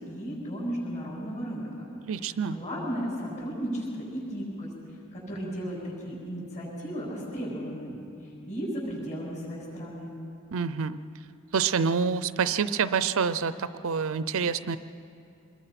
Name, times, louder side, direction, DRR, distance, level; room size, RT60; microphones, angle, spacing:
voice 1, 0.0-1.8 2.1-4.7 5.1-10.1, equal, 35° left, -10 dB, 7.1 m, -35 dB
voice 2, 2.1-2.6 10.5-11.0 11.5-14.8, right 6 dB, 65° right, 13 dB, 0.6 m, -27 dB
26.0 x 21.0 x 5.9 m, 2.6 s
head